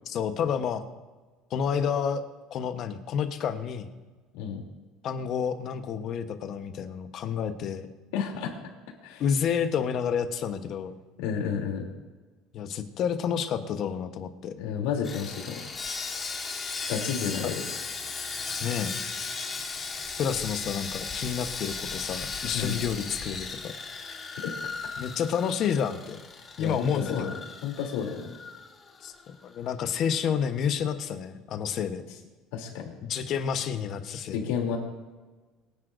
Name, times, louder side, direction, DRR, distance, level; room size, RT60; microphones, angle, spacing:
voice 1, 0.1-0.8 1.5-2.2 2.5-3.9 5.0-7.9 9.2-10.9 12.5-14.5 17.4-17.5 18.6-19.0 20.2-23.7 25.0-26.2 26.6-27.4 29.0-29.1 29.4-32.0 33.0-34.4, left 7 dB, 45° left, 8 dB, 1.0 m, -29 dB
voice 2, 8.1-8.5 9.0-9.2 11.2-11.8 14.5-15.6 16.9-17.5 22.5-22.8 26.6-27.3 27.6-28.3 32.5-32.8 34.3-34.8, left 7 dB, 85° left, 0 dB, 3.0 m, -30 dB
Sawing, 15.0-29.3 29.5-29.7 30.2-30.3, left 4 dB, 20° left, 1.4 m, -36 dB
23.5 x 10.0 x 2.6 m, 1.3 s
cardioid pair, 150°, 0 cm